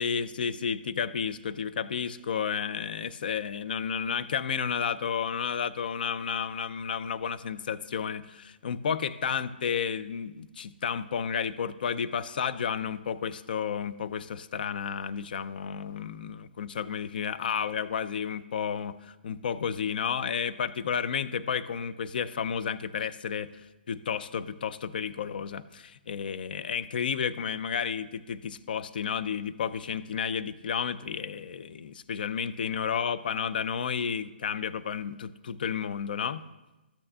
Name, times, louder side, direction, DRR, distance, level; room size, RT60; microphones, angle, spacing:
voice 1, 0.0-23.5 23.9-36.4, left 7 dB, 60° left, 14 dB, 0.4 m, -32 dB
13.0 x 8.6 x 2.4 m, 1.1 s
hypercardioid pair, 150°, 6 cm